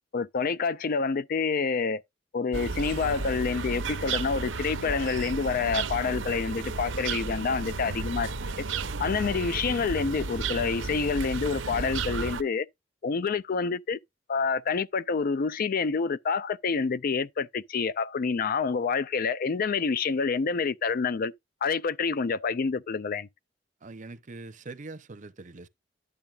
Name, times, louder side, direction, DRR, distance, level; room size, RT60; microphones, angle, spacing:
voice 1, 0.1-2.0 2.3-8.3 9.0-12.7 13.0-14.0 14.3-21.3 21.6-23.3, left 5 dB, 50° left, 0.4 m, -28 dB
sound 1, 2.5-12.4, right 4 dB, 85° right, 0.9 m, -33 dB
voice 2, 23.8-25.7, right 3 dB, 40° right, 0.7 m, -43 dB
10.5 x 6.9 x 2.4 m
head